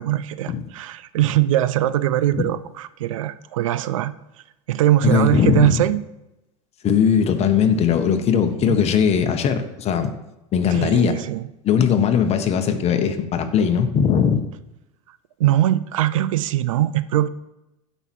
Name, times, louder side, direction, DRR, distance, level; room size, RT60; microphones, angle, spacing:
voice 1, 0.0-4.1 4.7-6.0 8.6-8.8 10.7-11.5 15.4-17.3, right 13 dB, 85° right, 15 dB, 0.6 m, -21 dB
voice 2, 5.0-5.8 6.8-10.1 10.5-11.2 11.6-14.4, left 7 dB, 40° left, 7 dB, 1.4 m, -19 dB
15.0 x 5.7 x 4.7 m, 0.93 s
supercardioid pair, 100°, 16 cm